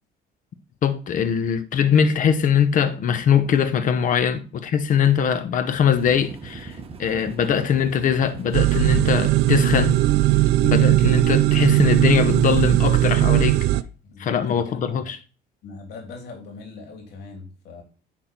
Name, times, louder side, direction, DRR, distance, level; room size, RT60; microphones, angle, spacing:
voice 1, 0.8-10.0 10.6-13.6 14.2-15.2, left 8 dB, 50° left, 0.9 m, -21 dB
sound 1, 6.0-12.7, right 4 dB, 35° right, 1.2 m, -39 dB
sound 2, 8.5-13.8, right 16 dB, 85° right, 0.5 m, -18 dB
voice 2, 10.6-11.0 13.7-15.1 15.6-17.8, left 4 dB, 80° left, 3.1 m, -40 dB
10.5 x 3.9 x 4.4 m
cardioid pair, 110°, 17 cm